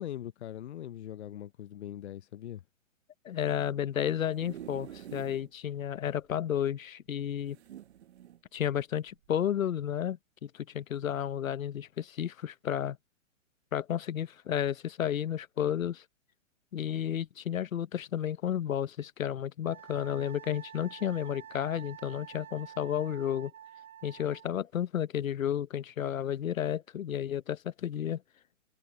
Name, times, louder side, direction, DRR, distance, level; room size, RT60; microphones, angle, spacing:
voice 1, 0.0-2.6, left 11 dB, 55° left, 0.7 m, -41 dB
voice 2, 3.2-7.6 8.5-13.0 13.7-16.0 16.7-23.5 24.0-28.2, left 10 dB, 85° left, 0.9 m, -32 dB
sound 1, 4.0-5.5 6.0-6.1 6.3-6.4 7.5-8.4 9.1-9.3, right 11 dB, 55° right, 1.0 m, -47 dB
Wind instrument woodwind instrument, 19.7-24.5, right 10 dB, 90° right, 1.1 m, -49 dB
hypercardioid pair, 150°, 39 cm